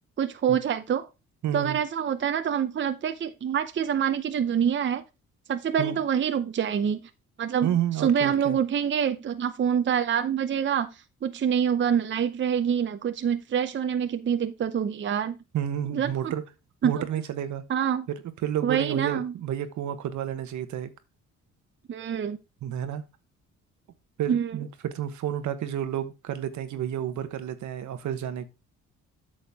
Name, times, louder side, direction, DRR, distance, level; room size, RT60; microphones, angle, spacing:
voice 1, 0.2-1.1 1.5-5.0 5.5-7.1 7.4-7.7 8.0-15.4 15.9-16.3 16.8-17.0 17.7-18.1 18.6-19.3 21.9-22.4 24.3-24.6, right 8 dB, 40° right, 0.7 m, -26 dB
voice 2, 1.4-1.8 5.8-6.0 7.6-8.6 15.5-16.4 16.8-17.6 18.4-20.9 22.6-23.0 24.2-28.5, right 10 dB, 70° right, 1.1 m, -30 dB
8.6 x 6.4 x 3.6 m
cardioid pair, 90°, 30 cm